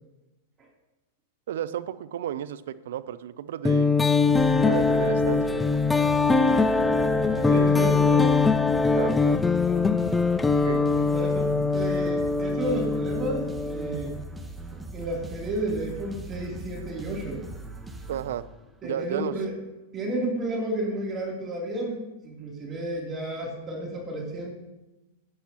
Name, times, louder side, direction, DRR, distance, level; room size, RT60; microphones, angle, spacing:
voice 1, 1.5-4.0 4.6-5.9 7.5-8.0 8.9-9.4 10.6-10.8 12.0-12.1 18.1-18.4 18.8-19.3, right 11 dB, 70° right, 15 dB, 0.5 m, -33 dB
sound 1, 3.6-14.2, left 4 dB, 10° left, 0.5 m, -22 dB
sound 2, 4.3-18.9, right 2 dB, 10° right, 1.1 m, -40 dB
voice 2, 7.2-8.3 10.7-14.1 14.7-17.4 18.8-19.5 19.9-24.5, right 1 dB, 30° right, -2 dB, 3.1 m, -32 dB
14.5 x 9.5 x 2.9 m, 1.0 s
hypercardioid pair, 105°, 0 cm